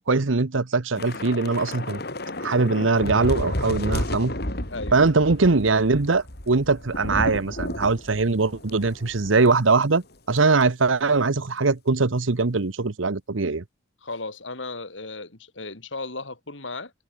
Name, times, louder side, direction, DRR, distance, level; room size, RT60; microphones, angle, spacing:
voice 1, 0.0-2.0 2.4-4.4 4.9-10.0 10.3-13.6, right 3 dB, 85° right, 1.0 m, -21 dB
Thunder / Rain, 1.0-9.6 9.8-10.0 10.4-10.6, left 1 dB, 55° left, 4.9 m, -32 dB
voice 2, 14.0-16.9, left 3 dB, 70° left, 3.8 m, -35 dB
head